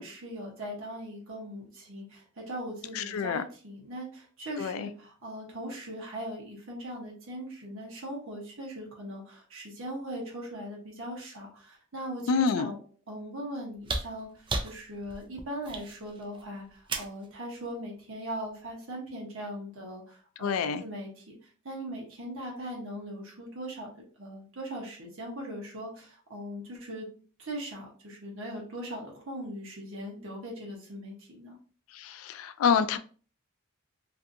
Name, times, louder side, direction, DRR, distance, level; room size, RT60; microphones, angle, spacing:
voice 1, 0.0-12.8 13.1-21.3 21.6-23.9 24.2-27.1 27.4-31.6, equal, 75° right, 0.9 m, -40 dB
voice 2, 2.9-3.4 4.6-4.9 12.3-12.7 20.4-20.8 31.9-33.0, left 6 dB, 90° left, 0.3 m, -27 dB
sound 1, 13.7-17.3 18.7-18.8, right 3 dB, 25° right, 0.3 m, -35 dB
2.6 x 2.6 x 2.5 m
head